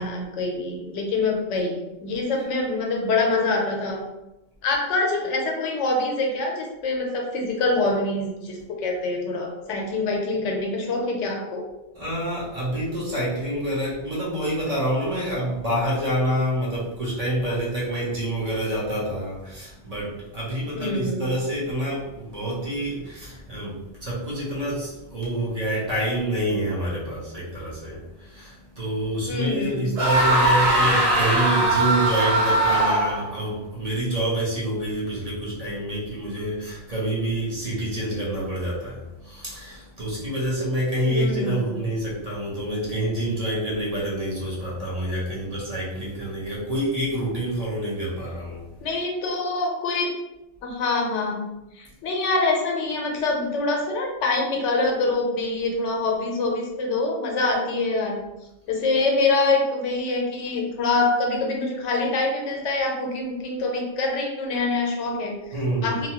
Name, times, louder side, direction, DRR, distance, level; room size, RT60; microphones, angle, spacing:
voice 1, 0.0-4.0 4.6-11.6 20.8-21.3 29.3-30.0 41.0-41.7 48.8-50.1 50.6-51.5 51.8-58.2 58.7-65.4 65.8-66.1, left 3 dB, 85° left, 1 dB, 1.0 m, -25 dB
voice 2, 11.9-48.7 65.5-66.0, right 1 dB, 35° right, -7 dB, 0.8 m, -27 dB
sound 1, 30.0-33.3, right 1 dB, 65° right, 0.9 m, -20 dB
2.8 x 2.2 x 2.8 m, 0.98 s
omnidirectional pair, 1.2 m